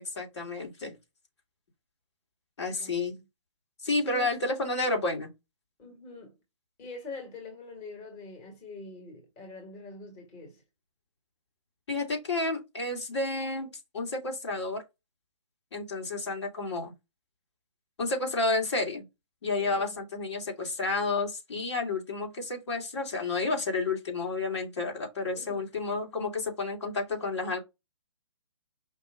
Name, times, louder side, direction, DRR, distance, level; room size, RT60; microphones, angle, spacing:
voice 1, 0.2-1.0 2.6-3.2 3.8-5.3 11.9-14.8 15.7-16.9 18.0-19.0 19.4-27.6, left 3 dB, 60° left, 2.1 m, -31 dB
voice 2, 2.8-3.2 4.0-4.3 5.8-6.3 6.8-10.6 19.6-20.0 25.3-25.7, left 3 dB, 25° left, 1.6 m, -44 dB
5.3 x 2.6 x 3.7 m
figure-of-eight pair, 135°, 16 cm